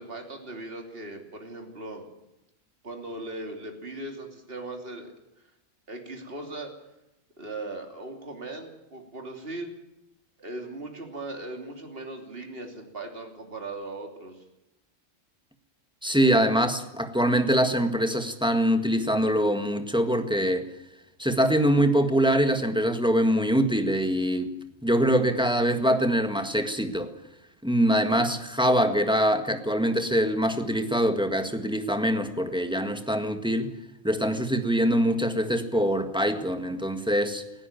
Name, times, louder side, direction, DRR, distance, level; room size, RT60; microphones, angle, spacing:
voice 1, 0.0-2.1 2.8-5.1 5.9-6.7 7.4-9.7 10.4-14.4, right 2 dB, 50° right, 3 dB, 3.2 m, -38 dB
voice 2, 16.0-20.7 21.2-24.5 24.8-27.1 27.6-33.7 34.0-37.4, equal, 5° right, 7 dB, 1.6 m, -24 dB
18.5 x 16.0 x 9.1 m, 0.89 s
omnidirectional pair, 1.3 m